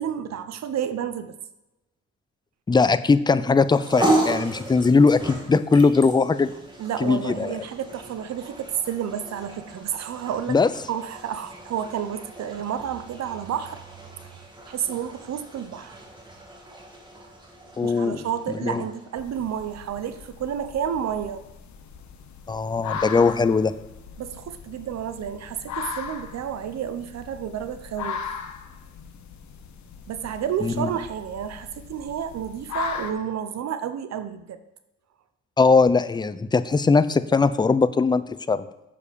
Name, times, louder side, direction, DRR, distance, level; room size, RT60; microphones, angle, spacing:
voice 1, 0.0-1.3 6.8-10.6 10.9-13.8 14.2-14.4 14.7-16.0 17.8-21.4 24.2-28.3 30.1-34.6, right 9 dB, 60° right, 11 dB, 0.7 m, -30 dB
voice 2, 2.7-6.5 7.0-7.5 10.5-10.7 17.8-18.2 18.6-18.8 22.5-23.7 30.6-30.9 35.6-38.7, left 4 dB, 15° left, 14 dB, 0.4 m, -20 dB
sound 1, 3.5-20.0, right 1 dB, 15° right, 1.9 m, -34 dB
sound 2, 19.2-33.1, left 6 dB, 70° left, 1.0 m, -38 dB
7.1 x 6.9 x 5.1 m, 0.94 s
cardioid pair, 90°, 30 cm